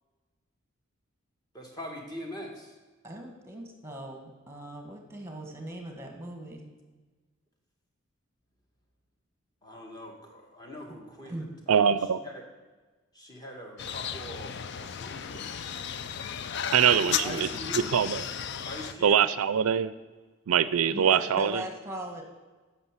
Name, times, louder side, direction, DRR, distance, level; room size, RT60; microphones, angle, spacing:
voice 1, 1.5-2.7 9.6-11.9 12.2-12.3 13.1-15.7 16.8-18.0 18.6-19.3, left 1 dB, 20° left, 0 dB, 1.6 m, -42 dB
voice 2, 3.0-6.7 11.2-11.5 20.9-22.2, equal, 10° right, 3 dB, 1.4 m, -39 dB
voice 3, 11.7-12.2 16.7-17.5 17.9-18.3 19.0-19.9 20.5-21.6, right 8 dB, 85° right, 16 dB, 0.4 m, -23 dB
sound 1, 13.8-18.9, left 8 dB, 50° left, 0.4 m, -34 dB
9.6 x 6.2 x 7.3 m, 1.3 s
head